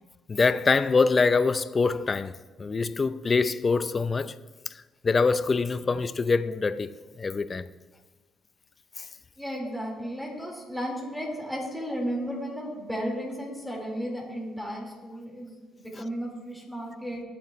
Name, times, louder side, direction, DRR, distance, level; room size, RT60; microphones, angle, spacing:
voice 1, 0.3-4.4 4.7-6.9 7.2-7.6 9.0-9.1 16.0-16.1, left 4 dB, 35° left, 0.6 m, -24 dB
voice 2, 9.4-17.2, equal, ahead, 4.4 m, -34 dB
22.0 x 8.8 x 3.2 m
cardioid pair, 90°, 0 cm